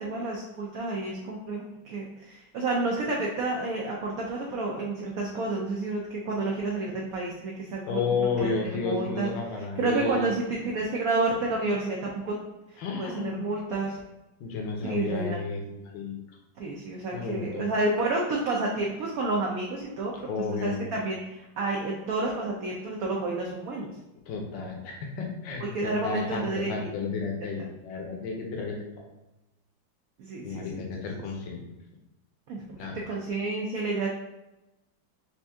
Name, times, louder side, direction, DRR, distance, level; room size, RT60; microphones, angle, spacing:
voice 1, 0.0-9.3 9.8-12.3 12.7-14.0 14.8-15.4 16.6-20.3 20.6-23.9 25.6-26.9 30.2-30.8 31.1-31.2 32.5-32.6 32.9-34.1, right 2 dB, 75° right, -2 dB, 0.8 m, -30 dB
voice 2, 7.9-10.3 12.8-13.5 14.4-16.1 17.1-17.5 20.3-20.9 24.3-28.8 30.4-31.6 32.8-32.9, left 4 dB, 70° left, 1 dB, 1.4 m, -32 dB
4.3 x 2.6 x 3.4 m, 0.98 s
omnidirectional pair, 2.1 m